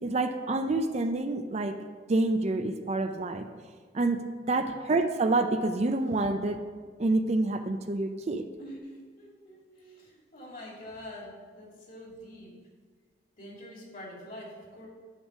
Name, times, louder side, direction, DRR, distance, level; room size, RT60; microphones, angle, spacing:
voice 1, 0.0-1.7 2.1-3.5 3.9-6.6 7.0-8.4, right 2 dB, 40° right, 7 dB, 0.5 m, -27 dB
voice 2, 8.6-12.5 13.4-14.9, equal, 55° left, -3 dB, 2.6 m, -46 dB
10.0 x 3.9 x 6.2 m, 1.5 s
head